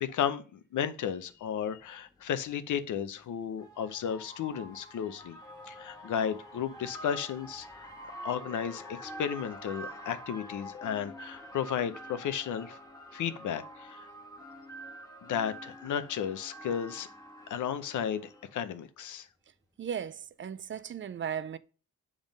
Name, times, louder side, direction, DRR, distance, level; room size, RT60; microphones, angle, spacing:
voice 1, 0.0-5.4 5.7-7.9 8.2-12.8 13.1-14.1 15.2-17.1 17.5-19.3, left 8 dB, 85° left, 0.7 m, -34 dB
sound 1, 1.4-1.5 2.9-18.5, equal, 10° left, 1.3 m, -47 dB
voice 2, 19.8-21.6, right 8 dB, 40° right, 0.4 m, -36 dB
7.2 x 3.7 x 5.2 m
wide cardioid pair, 125°, 29 cm